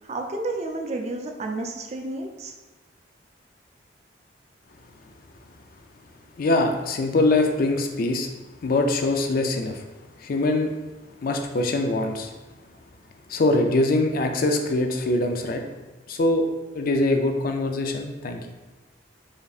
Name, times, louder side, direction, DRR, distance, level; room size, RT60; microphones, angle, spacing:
voice 1, 0.1-2.5, right 2 dB, 35° right, 3 dB, 0.4 m, -31 dB
voice 2, 6.4-8.3 8.6-9.8 10.2-10.7 11.2-12.3 13.3-15.6 16.1-16.4 16.7-18.4, left 2 dB, 50° left, 4 dB, 0.4 m, -23 dB
5.0 x 2.7 x 2.4 m, 1.1 s
head